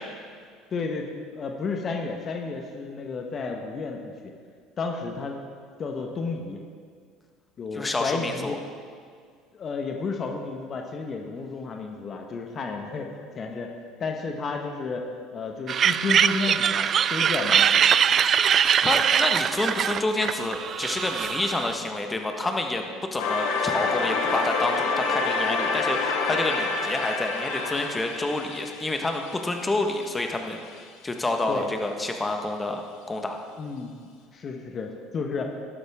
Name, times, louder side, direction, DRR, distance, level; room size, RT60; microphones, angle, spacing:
voice 1, 0.7-4.3 4.8-5.4 5.8-6.6 7.6-8.6 9.5-15.0 15.3-17.8 31.5-31.7 33.6-35.5, left 4 dB, 40° left, 3 dB, 1.2 m, -32 dB
voice 2, 7.7-8.6 18.8-22.8 23.1-32.8 33.1-33.4, left 2 dB, 20° left, 4 dB, 1.4 m, -28 dB
sound 1, 15.7-21.7, right 8 dB, 45° right, 0.3 m, -22 dB
sound 2, 23.2-30.0, left 4 dB, 70° left, 1.4 m, -27 dB
12.5 x 12.0 x 3.7 m, 2.1 s
hypercardioid pair, 65°, 0 cm